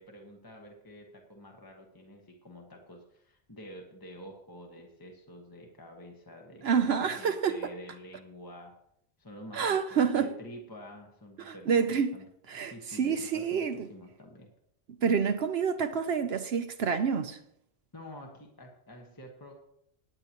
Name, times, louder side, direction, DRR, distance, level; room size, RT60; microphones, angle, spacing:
voice 1, 0.0-6.9 7.2-8.7 9.2-12.3 12.5-14.5 17.9-19.5, equal, 20° left, 1.3 m, -48 dB
voice 2, 6.6-7.7 9.5-10.3 11.4-12.2 12.5-13.9 15.0-17.4, right 6 dB, 70° right, 0.9 m, -28 dB
18.5 x 9.7 x 3.0 m
omnidirectional pair, 1.1 m